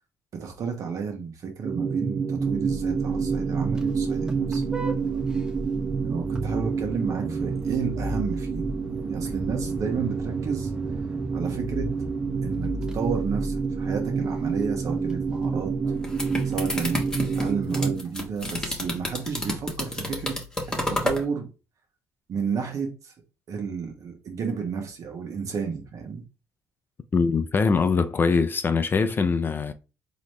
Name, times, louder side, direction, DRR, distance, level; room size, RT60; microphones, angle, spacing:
voice 1, 0.3-5.3 5.9-10.7 11.3-11.9 12.4-15.7 16.4-17.0 17.3-20.4 20.9-21.5 22.3-23.1 23.5-26.2, right 6 dB, 55° right, 1.5 m, -32 dB
sound 1, 1.6-18.0, right 5 dB, 30° right, 0.4 m, -28 dB
Vehicle horn car horn honking, 2.4-17.7, right 1 dB, 10° right, 0.9 m, -36 dB
sound 2, 15.8-21.2, left 1 dB, 10° left, 1.4 m, -30 dB
voice 2, 27.1-29.7, left 4 dB, 30° left, 0.5 m, -22 dB
4.0 x 3.0 x 3.2 m
cardioid pair, 100°, 7 cm